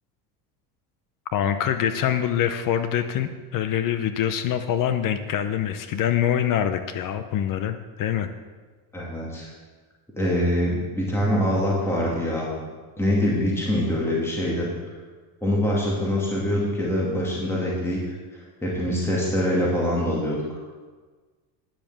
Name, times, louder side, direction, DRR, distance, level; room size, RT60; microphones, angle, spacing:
voice 1, 1.3-8.3, left 10 dB, 45° left, 10 dB, 0.7 m, -25 dB
voice 2, 8.9-9.5 10.2-12.5 13.0-15.0 15.4-18.0 18.3-20.6, equal, 5° left, -5 dB, 2.2 m, -24 dB
10.5 x 6.9 x 7.3 m, 1.4 s
supercardioid pair, 125°, 47 cm